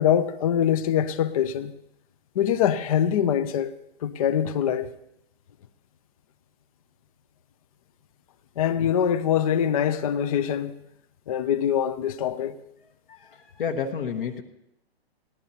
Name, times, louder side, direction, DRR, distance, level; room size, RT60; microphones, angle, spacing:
voice 1, 0.0-1.7 2.4-3.7 4.0-4.9 8.6-10.7 11.3-12.6, left 9 dB, 35° left, 0.5 m, -23 dB
voice 2, 13.1-14.4, left 6 dB, 55° left, 1.1 m, -30 dB
19.0 x 12.0 x 2.8 m
hypercardioid pair, 145°, 31 cm